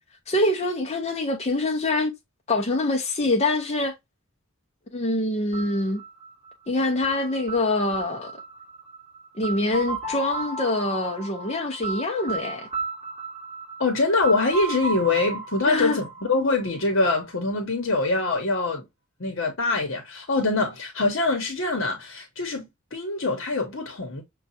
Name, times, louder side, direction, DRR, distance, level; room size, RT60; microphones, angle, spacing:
voice 1, 0.3-2.1 2.5-3.9 4.9-6.0 6.7-8.3 9.4-12.7 15.7-16.0, left 2 dB, 30° left, 0.6 m, -25 dB
sound 1, 5.5-17.3, right 3 dB, 20° right, 2.9 m, -35 dB
voice 2, 13.8-18.8 19.2-24.2, left 3 dB, 65° left, 0.9 m, -24 dB
6.4 x 2.3 x 2.7 m
head